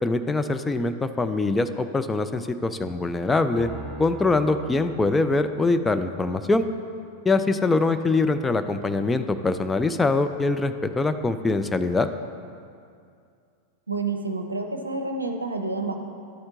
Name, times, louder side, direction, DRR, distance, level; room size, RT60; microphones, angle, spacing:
voice 1, 0.0-3.7 4.0-6.7 7.3-12.1, left 3 dB, 10° left, 9 dB, 0.3 m, -23 dB
Piano, 3.6-6.0, right 2 dB, 20° right, 1.2 m, -42 dB
voice 2, 13.9-16.0, right 3 dB, 80° right, 4 dB, 0.6 m, -29 dB
11.5 x 4.4 x 3.7 m, 2.4 s
figure-of-eight pair, 90°, 0 cm